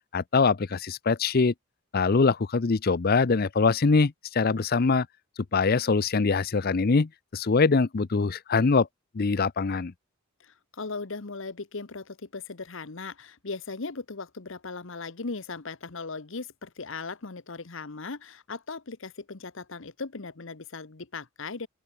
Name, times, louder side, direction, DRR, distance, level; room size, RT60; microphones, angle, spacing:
voice 1, 0.1-1.5 1.9-5.1 5.5-8.9 9.1-9.9, left 4 dB, 45° left, 0.5 m, -23 dB
voice 2, 10.4-21.7, left 4 dB, 60° left, 1.1 m, -38 dB
open air
head